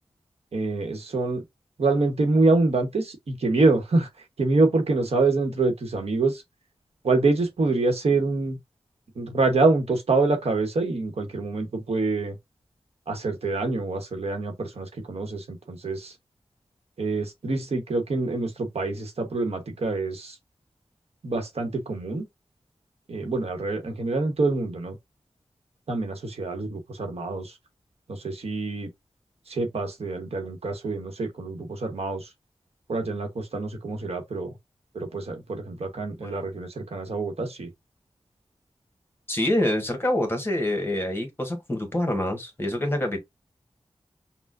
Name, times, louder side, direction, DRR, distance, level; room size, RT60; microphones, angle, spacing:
voice 1, 0.5-1.4 1.8-4.1 4.4-6.4 7.0-8.6 9.2-12.4 13.1-16.1 17.0-20.4 21.2-22.2 23.1-25.0 25.9-27.5 28.1-28.9 29.5-32.3 32.9-34.5 34.9-37.7, right 3 dB, 80° right, 1.0 m, -26 dB
voice 2, 39.3-43.2, left 1 dB, 20° left, 1.3 m, -26 dB
5.7 x 2.2 x 2.5 m
wide cardioid pair, 75°, 10 cm